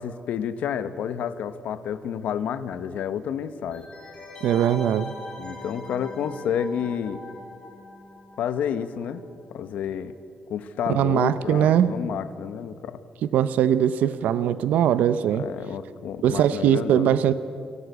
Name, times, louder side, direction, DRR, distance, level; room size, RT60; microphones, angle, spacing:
voice 1, 0.0-3.9 5.4-7.2 8.4-9.2 9.5-10.1 10.5-13.0 15.3-17.2, left 8 dB, 80° left, 13 dB, 1.0 m, -30 dB
sound 1, 3.7-9.2 9.4-9.5, left 2 dB, 35° left, 3.6 m, -42 dB
voice 2, 4.4-5.1 10.9-11.9 13.3-15.4 16.2-17.3, right 10 dB, 90° right, 14 dB, 0.6 m, -21 dB
29.0 x 11.0 x 8.2 m, 2.5 s
cardioid pair, 140°, 3 cm